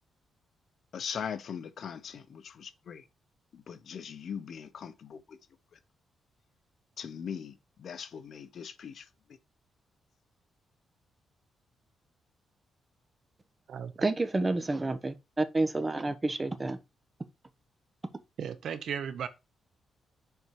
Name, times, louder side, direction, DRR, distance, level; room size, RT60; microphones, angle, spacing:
voice 1, 0.9-3.0 3.5-5.2 7.0-9.0, left 7 dB, 60° left, 0.9 m, -40 dB
voice 2, 14.0-16.8, right 2 dB, 20° right, 1.0 m, -29 dB
voice 3, 18.4-19.3, right 8 dB, 70° right, 1.0 m, -35 dB
6.9 x 4.4 x 4.8 m
cardioid pair, 115°, 0 cm